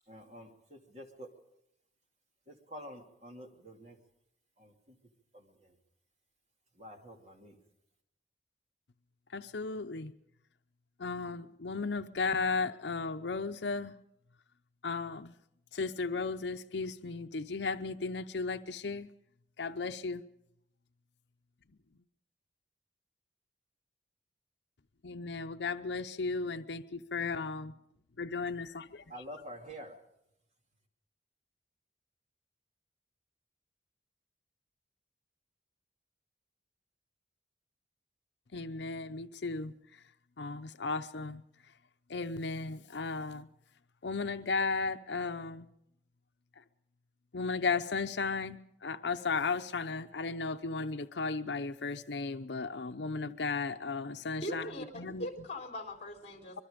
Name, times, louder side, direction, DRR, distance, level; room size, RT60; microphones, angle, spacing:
voice 1, 0.1-1.3 2.5-4.0 4.6-5.0 5.3-5.8 6.7-7.6 29.1-30.0, equal, 40° right, 3 dB, 2.6 m, -48 dB
voice 2, 9.3-10.1 11.0-13.9 14.8-15.3 15.7-19.1 19.6-20.2 25.0-27.7 28.2-29.0 38.5-40.0 40.4-41.4 42.1-43.5 44.0-45.7 46.6-46.7 47.3-54.7 54.9-55.3, left 4 dB, 75° left, 8 dB, 0.7 m, -35 dB
voice 3, 54.4-56.6, equal, 35° left, 3 dB, 3.7 m, -41 dB
25.0 x 22.5 x 5.2 m, 0.80 s
head